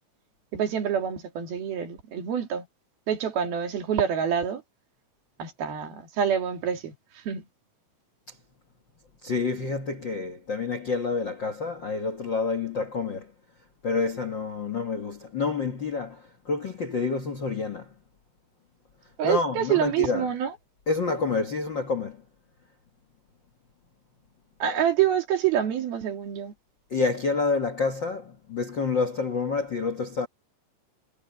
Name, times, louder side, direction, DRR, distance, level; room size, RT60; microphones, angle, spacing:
voice 1, 0.5-2.7 3.1-4.6 5.4-6.9 7.3-7.4 19.2-20.5 24.6-26.5, right 9 dB, 75° right, 4.5 m, -26 dB
voice 2, 9.2-13.3 13.8-17.9 19.2-20.3 20.9-22.2 26.9-30.3, left 4 dB, 55° left, 1.3 m, -28 dB
omnidirectional pair, 4.3 m